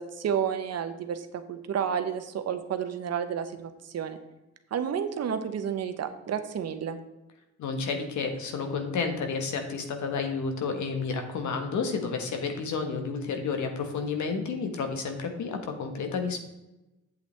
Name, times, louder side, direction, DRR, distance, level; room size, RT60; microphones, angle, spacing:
voice 1, 0.0-4.2 4.7-7.0, right 8 dB, 55° right, 9 dB, 0.9 m, -31 dB
voice 2, 7.6-16.4, left 5 dB, 70° left, 5 dB, 1.5 m, -31 dB
8.2 x 8.1 x 3.4 m, 0.99 s
cardioid pair, 90°, 30 cm